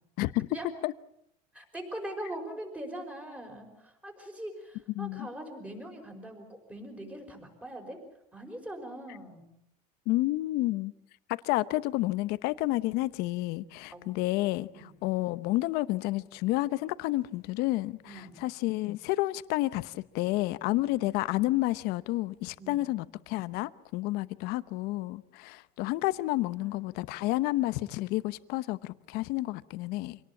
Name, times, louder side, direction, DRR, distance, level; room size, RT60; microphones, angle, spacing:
voice 1, 0.2-0.5 0.8-0.9 5.0-5.3 10.1-10.9 11.3-14.7 15.0-30.2, left 18 dB, 55° left, 0.9 m, -30 dB
voice 2, 1.5-8.0 8.3-9.5 13.9-14.0 14.7-15.0 18.0-18.4 20.9-21.0 22.6-22.9 26.6-26.8, right 1 dB, 5° right, 5.2 m, -42 dB
26.5 x 18.5 x 8.5 m
supercardioid pair, 145°, 20 cm